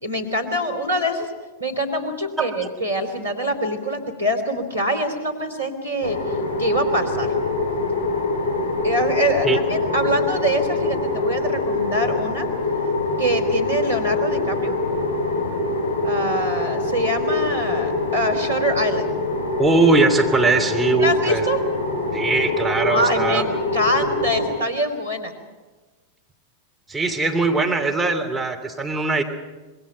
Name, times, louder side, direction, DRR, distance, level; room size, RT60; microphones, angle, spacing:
voice 1, 0.0-1.3 1.6-7.3 8.8-12.5 13.2-14.7 16.0-19.1 21.0-21.6 22.9-25.3, equal, 80° right, 4 dB, 3.2 m, -24 dB
sound 1, 6.0-24.5, left 2 dB, 50° left, 6.1 m, -24 dB
voice 2, 19.6-21.4 22.1-23.4 26.9-29.2, right 3 dB, 5° right, 0 dB, 3.0 m, -20 dB
26.0 x 21.0 x 5.7 m, 1.3 s
figure-of-eight pair, 90°, 0 cm